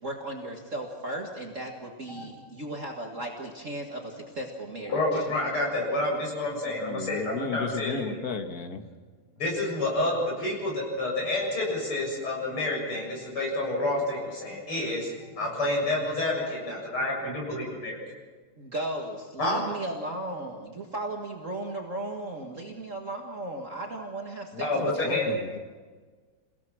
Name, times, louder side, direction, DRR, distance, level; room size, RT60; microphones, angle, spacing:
voice 1, 0.0-5.3 18.6-25.5, right 1 dB, 35° right, 0 dB, 2.0 m, -36 dB
voice 2, 4.9-8.2 9.4-17.9 19.4-19.6 24.6-25.3, left 2 dB, 80° left, -2 dB, 8.0 m, -29 dB
voice 3, 6.6-8.8 24.5-25.6, left 5 dB, 50° left, 7 dB, 1.7 m, -34 dB
29.0 x 17.0 x 6.2 m, 1.5 s
omnidirectional pair, 2.4 m